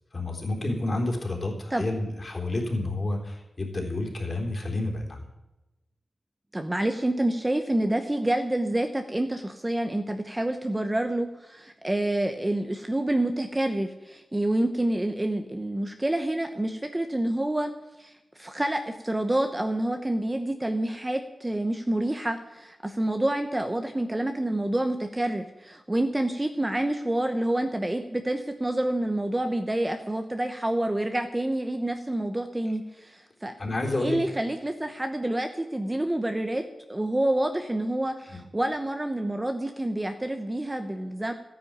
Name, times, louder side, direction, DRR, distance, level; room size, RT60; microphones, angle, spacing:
voice 1, 0.1-5.2 33.6-34.2 38.3-38.4, left 2 dB, 35° left, 0 dB, 3.8 m, -29 dB
voice 2, 6.5-17.7 18.0-33.5 34.0-36.6 36.9-41.3, right 1 dB, 15° right, 6 dB, 1.0 m, -28 dB
14.0 x 10.5 x 8.7 m, 1.0 s
wide cardioid pair, 145°, 0 cm